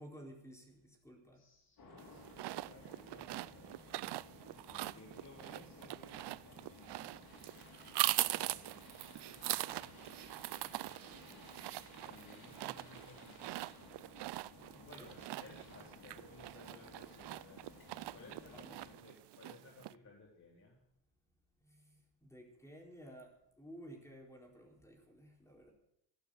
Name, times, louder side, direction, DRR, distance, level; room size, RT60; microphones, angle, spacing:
voice 1, 0.0-1.4 14.7-15.1 18.5-18.8 21.6-23.3 23.6-25.7, equal, 5° left, 0 dB, 4.3 m, -54 dB
voice 2, 1.3-3.8 4.5-7.2 8.3-9.0 12.0-13.8 14.8-17.6 18.1-20.8, left 2 dB, 35° left, -3 dB, 3.9 m, -59 dB
sound 1, 1.8-18.9, left 3 dB, 60° left, 6.0 m, -57 dB
sound 2, 2.0-19.9, right 17 dB, 65° right, 0.5 m, -42 dB
15.5 x 11.0 x 6.5 m, 0.80 s
cardioid pair, 130°, 44 cm